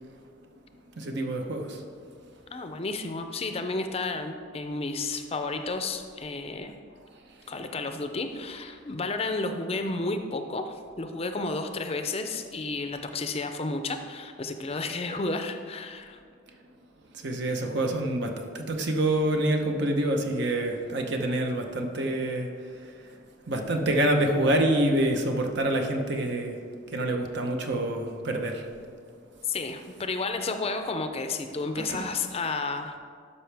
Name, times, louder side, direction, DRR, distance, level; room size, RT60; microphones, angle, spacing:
voice 1, 1.0-1.8 17.1-23.2 23.5-26.6 26.9-28.7 31.8-32.1, right 1 dB, 65° right, 3 dB, 0.9 m, -27 dB
voice 2, 2.5-6.7 7.5-16.2 29.4-33.0, left 3 dB, 30° left, 7 dB, 0.5 m, -32 dB
12.5 x 5.6 x 3.4 m, 2.1 s
head